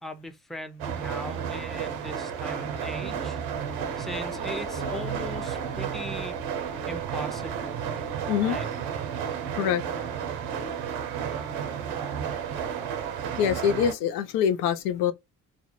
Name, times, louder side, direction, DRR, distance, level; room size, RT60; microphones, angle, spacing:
voice 1, 0.0-3.4 4.0-7.8 8.4-8.7, left 1 dB, ahead, 0.5 m, -39 dB
sound 1, 0.8-13.9, right 8 dB, 85° right, 0.6 m, -32 dB
Bicycle, 2.6-9.0, left 3 dB, 35° left, 1.1 m, -46 dB
voice 2, 8.3-8.6 9.6-9.8 13.4-15.1, left 9 dB, 80° left, 0.5 m, -24 dB
2.4 x 2.0 x 2.9 m
hypercardioid pair, 55°, 38 cm